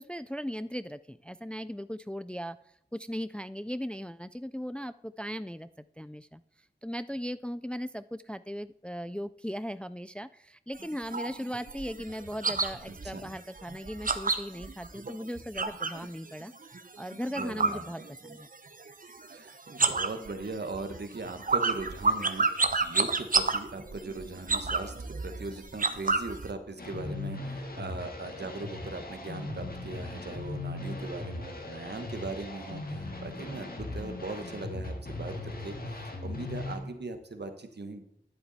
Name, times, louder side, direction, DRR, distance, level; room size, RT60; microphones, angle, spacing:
voice 1, 0.0-2.6 2.9-6.4 6.8-16.5 17.0-18.5, equal, 5° left, 15 dB, 0.3 m, -38 dB
sound 1, 10.8-16.1 16.4-18.6 18.8-19.4 19.7-26.5, right 3 dB, 50° right, 0.8 m, -30 dB
voice 2, 17.4-17.8 19.3-38.0, right 3 dB, 65° right, 7 dB, 1.2 m, -39 dB
sound 2, 26.8-36.8, left 2 dB, 55° left, 1.8 m, -38 dB
11.0 x 8.0 x 4.1 m, 0.73 s
wide cardioid pair, 50°, 18 cm